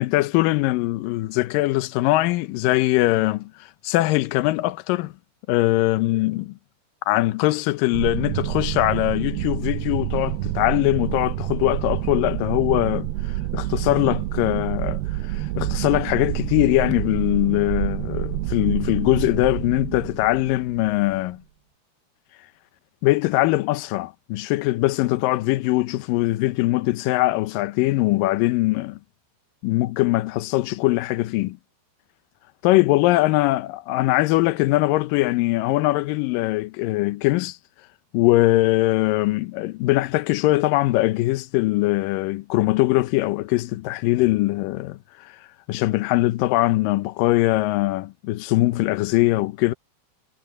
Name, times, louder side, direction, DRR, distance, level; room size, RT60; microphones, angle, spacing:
voice 1, 0.0-3.5 3.8-5.1 5.5-6.5 7.1-21.4 23.0-29.0 29.6-31.6 32.6-33.6 33.9-37.6 38.1-45.4 45.7-49.7, left 18 dB, 80° left, 2.1 m, -21 dB
sound 1, 7.9-21.2, right 16 dB, 85° right, 2.6 m, -28 dB
omnidirectional pair, 4.7 m